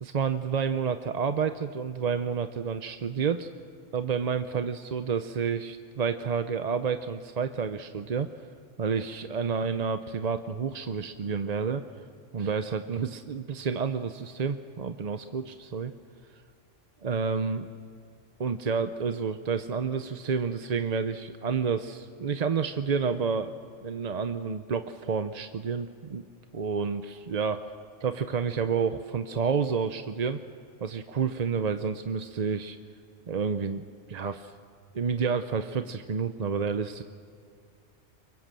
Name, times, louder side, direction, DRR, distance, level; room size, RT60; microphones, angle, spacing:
voice 1, 0.0-3.5 3.9-8.3 8.8-11.8 12.3-15.9 17.0-17.7 18.4-23.5 23.8-26.2 26.5-27.7 28.0-30.4 30.8-32.8 33.3-34.5 34.9-37.0, right 6 dB, 45° right, 9 dB, 0.7 m, -29 dB
26.0 x 23.5 x 7.6 m, 2.3 s
omnidirectional pair, 1.2 m